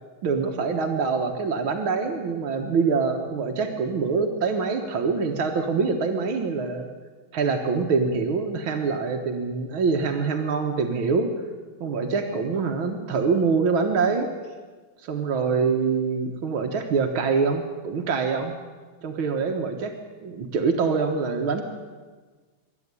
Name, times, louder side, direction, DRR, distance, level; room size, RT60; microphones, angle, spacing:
voice 1, 0.2-6.9 7.3-11.4 11.8-14.3 15.0-18.6 19.0-21.6, right 5 dB, 90° right, 4 dB, 2.2 m, -25 dB
25.0 x 12.5 x 9.7 m, 1.4 s
omnidirectional pair, 2.2 m